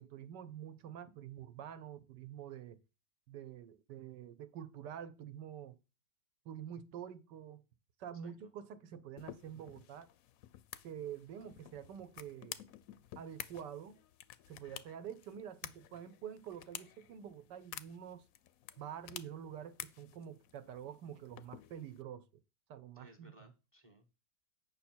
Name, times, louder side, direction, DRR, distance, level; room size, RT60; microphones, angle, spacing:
voice 1, 0.0-2.8 3.3-5.8 6.4-7.6 8.0-10.1 10.8-12.6 13.2-14.0 14.5-18.3 18.8-22.3 22.7-23.3, right 9 dB, 75° right, 1.3 m, -47 dB
sound 1, 9.2-22.0, left 11 dB, 70° left, 0.8 m, -52 dB
voice 2, 22.9-24.1, right 1 dB, 20° right, 0.8 m, -61 dB
8.3 x 5.6 x 4.4 m
omnidirectional pair, 1.9 m